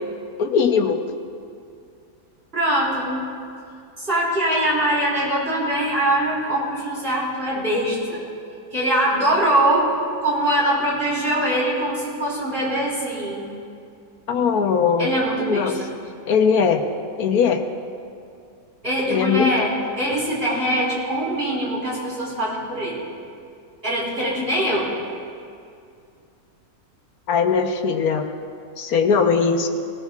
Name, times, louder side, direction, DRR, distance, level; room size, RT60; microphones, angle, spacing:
voice 1, 0.4-1.0 14.3-15.1 15.5-15.7 16.3-16.8 17.2-17.6 19.1-19.5 27.3-28.3 28.8-29.7, left 6 dB, 80° left, 5 dB, 1.4 m, -19 dB
voice 2, 2.5-3.2 4.0-8.2 8.7-9.9 10.2-13.4 15.0-15.9 18.8-23.0 23.8-24.9, right 1 dB, 40° right, -7 dB, 4.4 m, -22 dB
19.5 x 18.5 x 2.4 m, 2.4 s
omnidirectional pair, 1.6 m